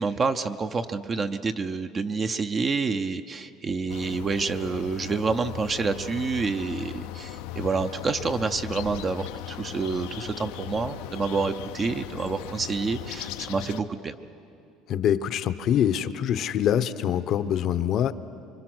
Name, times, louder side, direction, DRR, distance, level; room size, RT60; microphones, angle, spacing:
voice 1, 0.0-14.2, right 4 dB, 30° right, 8 dB, 0.7 m, -28 dB
sound 1, 3.9-13.8, left 13 dB, 90° left, 0.8 m, -38 dB
voice 2, 14.9-18.1, left 10 dB, 50° left, 13 dB, 0.8 m, -24 dB
25.0 x 24.5 x 6.2 m, 2.8 s
cardioid pair, 130°, 0 cm